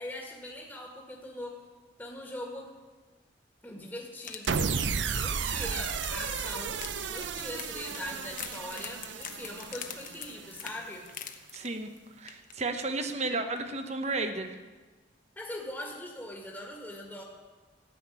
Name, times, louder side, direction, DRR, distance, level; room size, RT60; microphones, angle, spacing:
voice 1, 0.0-1.6 2.0-2.7 3.6-4.7 5.1-11.1 15.3-17.2, left 1 dB, 10° left, -2 dB, 1.8 m, -41 dB
sound 1, 4.2-12.0 12.3-12.5 12.9-13.0, left 9 dB, 45° left, 1.0 m, -45 dB
sound 2, 4.5-10.8, right 6 dB, 80° right, 0.7 m, -33 dB
voice 2, 11.5-11.9 12.2-14.6, right 3 dB, 35° right, 7 dB, 1.0 m, -33 dB
14.0 x 7.4 x 9.9 m, 1.3 s
head